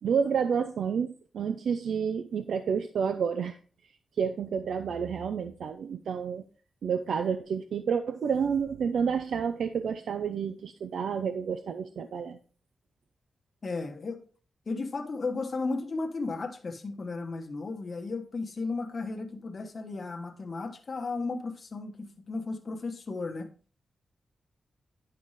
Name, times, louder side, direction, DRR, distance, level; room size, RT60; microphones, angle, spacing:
voice 1, 0.0-3.6 4.2-6.4 6.8-12.4, right 6 dB, 90° right, 0.6 m, -29 dB
voice 2, 13.6-14.2 14.7-23.5, left 3 dB, 40° left, 1.2 m, -34 dB
10.5 x 5.6 x 3.2 m
wide cardioid pair, 160°, 0 cm